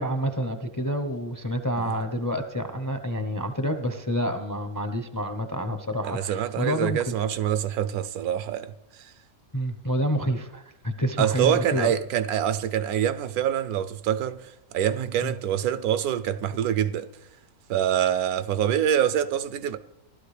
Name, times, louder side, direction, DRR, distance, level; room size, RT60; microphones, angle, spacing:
voice 1, 0.0-7.1 9.5-11.9 15.2-15.3, equal, 25° left, 0.5 m, -28 dB
voice 2, 6.0-8.7 11.2-17.1 17.7-19.8, right 10 dB, 85° right, 1.1 m, -25 dB
16.0 x 12.0 x 3.3 m
omnidirectional pair, 1.5 m